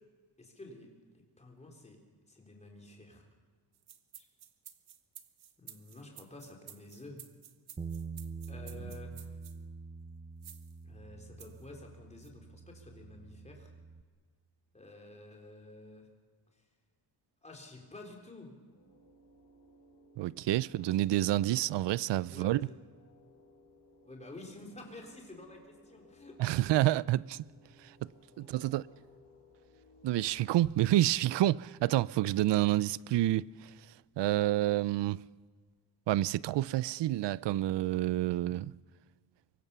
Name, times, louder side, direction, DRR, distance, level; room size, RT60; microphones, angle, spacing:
voice 1, 0.4-0.9 1.1-2.0 2.3-3.3 4.2-4.3 5.6-7.2 8.5-9.4 10.8-13.7 14.7-16.1 16.5-16.7 17.4-18.5 20.8-21.0 22.3-22.8 24.0-26.6 28.6-28.7 30.2-30.5, left 2 dB, 15° left, 3.8 m, -51 dB
sound 1, 3.7-9.6 10.4-10.7 11.4-11.6 12.2-12.3, right 10 dB, 70° right, 1.5 m, -52 dB
Bass guitar, 7.8-14.0, right 5 dB, 15° right, 0.7 m, -45 dB
sound 2, 18.7-30.5, left 1 dB, 75° left, 5.8 m, -61 dB
voice 2, 20.2-22.6 26.4-27.4 28.4-28.8 30.0-33.7 34.2-35.2 36.1-38.7, right 14 dB, 85° right, 0.6 m, -28 dB
24.5 x 23.5 x 6.9 m
wide cardioid pair, 175°, 41 cm